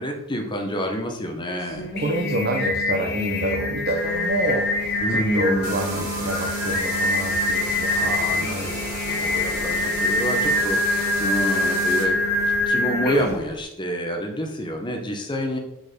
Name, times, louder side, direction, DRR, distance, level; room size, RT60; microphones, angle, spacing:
voice 1, 0.0-1.9 5.0-6.1 7.9-8.8 9.1-12.2 12.7-15.6, equal, 20° left, 4 dB, 0.8 m, -28 dB
voice 2, 1.6-8.7, right 1 dB, 45° right, 2 dB, 0.6 m, -28 dB
Singing, 1.7-13.5, left 2 dB, 45° left, 1.1 m, -24 dB
sound 1, 3.9-12.7, right 1 dB, 60° right, 1.3 m, -41 dB
sound 2, 5.6-12.0, right 2 dB, 80° right, 2.3 m, -34 dB
4.6 x 4.3 x 5.0 m, 0.88 s
head